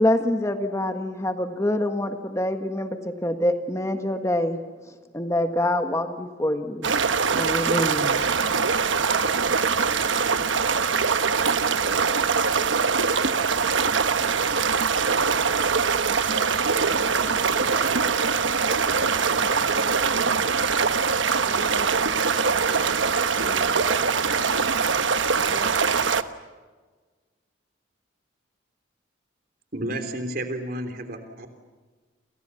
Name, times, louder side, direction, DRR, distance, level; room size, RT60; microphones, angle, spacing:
voice 1, 0.0-4.6 5.1-6.9 7.3-8.2, left 1 dB, 15° left, 7 dB, 1.5 m, -25 dB
sound 1, 6.8-26.2, right 5 dB, 75° right, 1.2 m, -23 dB
voice 2, 16.8-20.8 21.4-23.0 23.4-24.9 25.2-26.1, right 1 dB, 15° right, 7 dB, 1.6 m, -43 dB
voice 3, 29.7-31.5, right 1 dB, 50° right, 7 dB, 3.4 m, -31 dB
29.0 x 28.0 x 7.0 m, 1.4 s
head